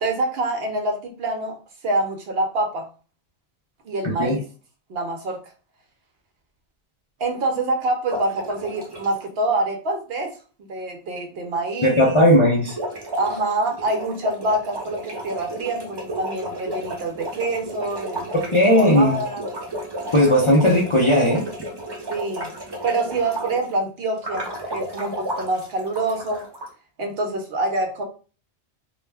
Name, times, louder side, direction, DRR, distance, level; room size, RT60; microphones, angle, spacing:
voice 1, 0.0-1.6 1.8-2.9 3.8-4.4 4.9-5.4 7.2-10.3 10.7-12.2 13.2-19.4 22.1-22.5 22.8-26.4 27.0-28.0, right 2 dB, 65° right, 3 dB, 0.8 m, -26 dB
sound 1, 8.1-9.2 12.6-23.7 24.2-26.7, equal, 40° right, 0.3 m, -33 dB
voice 2, 11.8-12.7 18.5-19.2 20.1-21.4, equal, 40° left, -3 dB, 0.4 m, -16 dB
2.3 x 2.1 x 3.2 m, 0.37 s
omnidirectional pair, 1.1 m